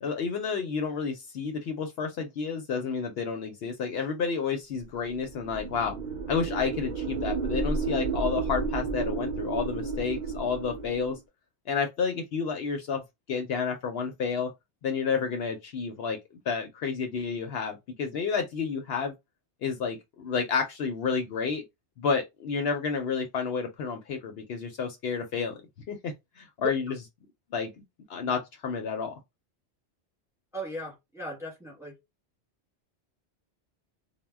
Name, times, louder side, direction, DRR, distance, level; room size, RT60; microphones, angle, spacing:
voice 1, 0.0-6.0 6.3-11.2 11.7-13.0 13.3-14.5 14.8-16.2 16.5-19.1 19.6-21.6 22.0-25.6 25.9-27.0 27.5-27.7 28.1-29.1, left 5 dB, 70° left, 0.8 m, -30 dB
sound 1, 5.1-11.2, right 4 dB, 55° right, 0.7 m, -32 dB
voice 2, 30.5-32.0, right 1 dB, 5° right, 0.8 m, -37 dB
2.1 x 2.1 x 3.3 m
omnidirectional pair, 1.2 m